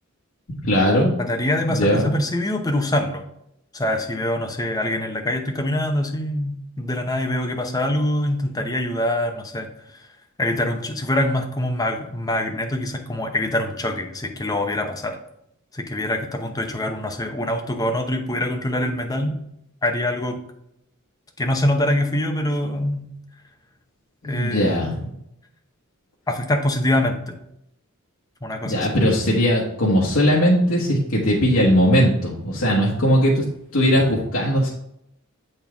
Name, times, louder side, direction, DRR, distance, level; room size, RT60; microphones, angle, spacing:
voice 1, 0.6-1.1 1.7-2.1 24.2-25.1 28.6-33.4 33.7-34.7, equal, 85° left, -5 dB, 1.3 m, -19 dB
voice 2, 1.2-3.2 3.7-10.1 10.4-15.2 15.7-19.4 19.8-20.4 21.4-23.1 24.2-25.1 26.3-27.4 28.4-28.9 33.9-34.0, left 1 dB, 20° left, 3 dB, 0.8 m, -24 dB
7.5 x 4.4 x 3.5 m, 0.77 s
head